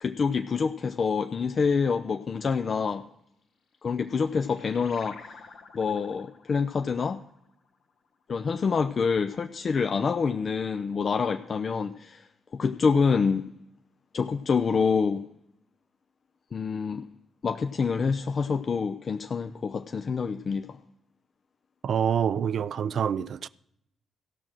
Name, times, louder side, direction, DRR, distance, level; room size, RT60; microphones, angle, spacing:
voice 1, 0.0-3.0 3.8-5.2 5.7-7.2 8.3-12.3 12.5-13.5 14.1-15.2 16.5-17.1 17.4-20.8, left 5 dB, 50° left, 0.5 m, -26 dB
sound 1, 3.6-8.7, left 4 dB, 75° left, 1.3 m, -52 dB
voice 2, 21.8-23.5, right 8 dB, 60° right, 0.3 m, -26 dB
15.0 x 6.3 x 6.1 m
hypercardioid pair, 45°, 0 cm